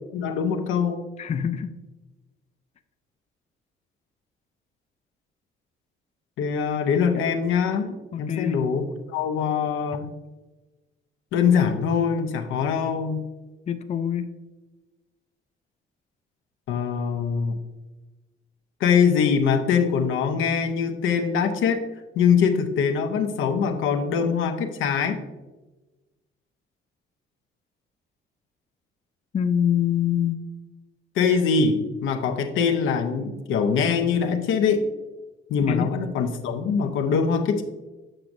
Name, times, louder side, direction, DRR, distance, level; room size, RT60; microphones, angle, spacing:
voice 1, 0.1-1.0 6.4-10.1 11.3-13.2 16.7-17.6 18.8-21.8 22.2-25.2 31.2-34.9 35.5-37.6, left 6 dB, 90° left, 6 dB, 0.7 m, -23 dB
voice 2, 1.2-1.7 8.1-8.7 13.7-14.3 29.3-30.4 35.7-35.9, left 9 dB, 35° left, 9 dB, 0.4 m, -25 dB
7.6 x 5.9 x 2.6 m, 1.1 s
cardioid pair, 90°, 20 cm